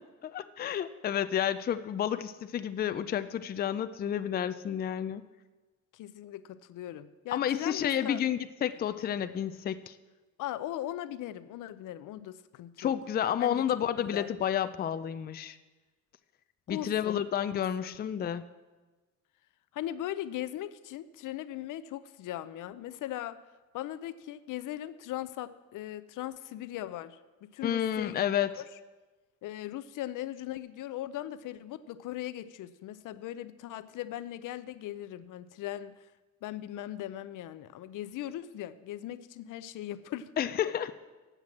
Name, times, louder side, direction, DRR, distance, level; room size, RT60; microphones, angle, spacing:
voice 1, 0.3-5.2 7.3-10.0 12.8-15.6 16.7-18.4 27.6-28.5 40.4-41.0, left 9 dB, 30° left, 11 dB, 0.4 m, -30 dB
voice 2, 5.9-8.2 10.4-12.9 13.3-13.7 14.0-14.3 16.7-17.3 17.5-18.0 19.7-23.4 23.7-28.2 28.6-28.7 29.4-36.1 36.4-40.3, left 13 dB, 85° left, 14 dB, 0.5 m, -39 dB
8.0 x 7.5 x 7.2 m, 1.2 s
cardioid pair, 130°, 30 cm